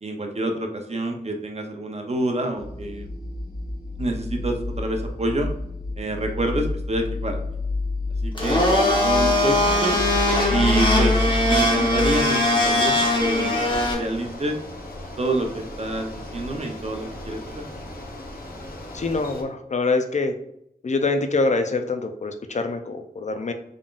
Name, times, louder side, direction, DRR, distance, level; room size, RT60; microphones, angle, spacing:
voice 1, 0.0-3.1 4.0-5.5 6.0-7.4 8.2-10.0 10.5-14.6 15.2-17.6, right 2 dB, 40° right, 3 dB, 0.7 m, -27 dB
sound 1, 2.6-12.2, left 3 dB, 75° right, 1.2 m, -28 dB
Domestic sounds home sounds, 8.3-13.9, left 1 dB, 30° left, 1.1 m, -20 dB
Bicycle, 9.9-19.4, left 1 dB, 65° left, 1.0 m, -38 dB
voice 2, 18.9-20.3 20.8-23.5, left 3 dB, 45° left, 7 dB, 0.5 m, -24 dB
3.7 x 3.6 x 2.4 m, 0.76 s
wide cardioid pair, 60°, 16 cm